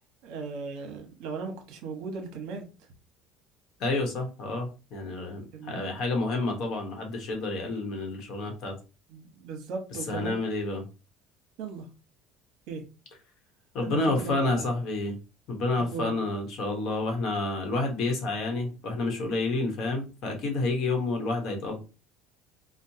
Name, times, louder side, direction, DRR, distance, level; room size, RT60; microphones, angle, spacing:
voice 1, 0.2-2.6 5.5-5.8 9.1-10.3 11.6-11.9 12.7-12.8 13.8-14.7 15.9-16.1, right 4 dB, 60° right, 1.1 m, -37 dB
voice 2, 3.8-8.7 9.9-10.8 13.7-15.2 15.5-21.8, left 2 dB, 45° left, 1.1 m, -29 dB
4.6 x 2.2 x 2.8 m
cardioid pair, 160°, 0 cm